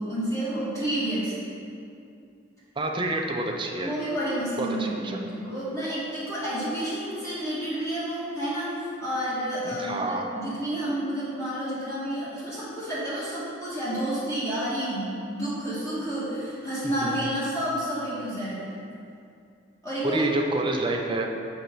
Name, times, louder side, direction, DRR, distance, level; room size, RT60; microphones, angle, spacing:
voice 1, 0.0-1.4 3.8-18.7 19.8-20.3, right 1 dB, 15° left, -10 dB, 1.3 m, -30 dB
voice 2, 2.8-3.9 4.6-5.2 9.6-10.3 17.0-17.3 20.0-21.3, right 2 dB, 25° right, 1 dB, 0.5 m, -28 dB
6.2 x 3.9 x 5.5 m, 2.5 s
head